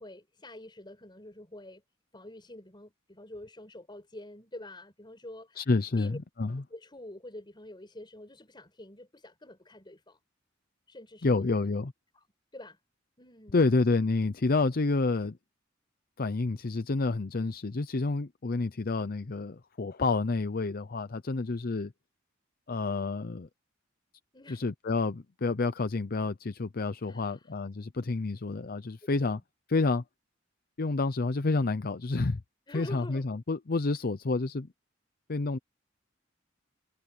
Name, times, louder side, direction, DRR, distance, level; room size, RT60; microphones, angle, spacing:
voice 1, 0.0-1.8 2.1-5.7 6.0-6.2 6.7-10.2 10.9-11.6 12.1-12.3 12.5-12.8 13.2-13.8 24.3-24.6 27.0-27.6 29.2-29.4 32.7-33.3, left 1 dB, 25° left, 5.2 m, -47 dB
voice 2, 5.6-6.1 6.4-6.6 11.2-11.9 13.5-15.4 16.2-21.9 22.7-23.5 24.5-29.4 29.7-30.0 30.8-32.4 32.7-34.7 35.3-35.6, left 3 dB, 50° left, 0.6 m, -29 dB
head